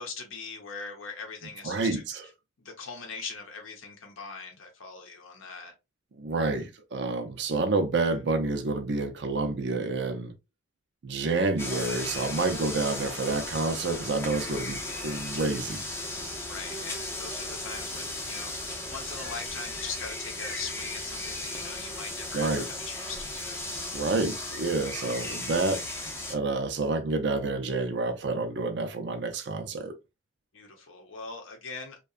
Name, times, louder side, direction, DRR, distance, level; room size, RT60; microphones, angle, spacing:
voice 1, 0.0-2.0 2.6-5.7 16.5-18.5 18.9-23.7 25.7-25.9 30.5-32.0, left 4 dB, 85° left, 0.6 m, -41 dB
voice 2, 1.6-2.0 6.2-10.3 11.0-15.8 22.3-22.7 23.9-25.8 26.3-29.9, right 3 dB, 60° right, 0.5 m, -28 dB
sound 1, 11.6-26.3, left 2 dB, 10° left, 0.4 m, -36 dB
2.7 x 2.2 x 2.3 m
head